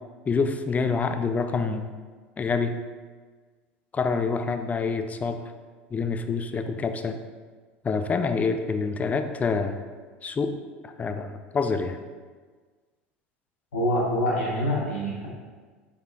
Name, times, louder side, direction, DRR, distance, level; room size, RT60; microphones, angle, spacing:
voice 1, 0.3-1.9 2.4-2.8 3.9-5.5 5.9-7.2 7.8-9.8 10.2-10.6 10.8-12.0, left 4 dB, 25° left, 8 dB, 0.3 m, -27 dB
voice 2, 13.7-15.3, equal, 85° left, -4 dB, 1.0 m, -25 dB
4.1 x 3.6 x 2.6 m, 1.5 s
hypercardioid pair, 80°, 6 cm